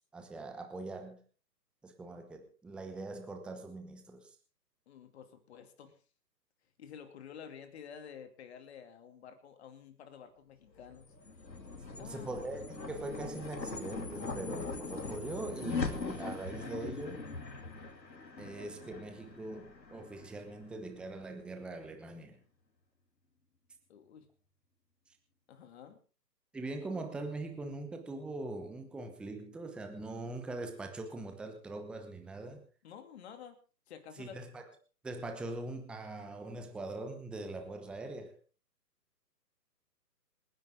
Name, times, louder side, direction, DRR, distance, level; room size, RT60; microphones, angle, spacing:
voice 1, 0.1-1.2 1.8-4.3 12.0-17.2 18.4-22.4 26.5-32.6 34.2-34.6 35.0-38.4, right 2 dB, ahead, 5 dB, 1.0 m, -42 dB
voice 2, 4.9-6.0 6.8-11.1 12.0-12.4 23.9-24.3 25.5-26.0 32.8-33.6 33.9-34.4, left 8 dB, 40° left, 8 dB, 2.8 m, -50 dB
sound 1, 10.8-21.3, left 4 dB, 80° left, 2.9 m, -41 dB
27.0 x 10.5 x 3.7 m, 0.37 s
figure-of-eight pair, 140°, 50 cm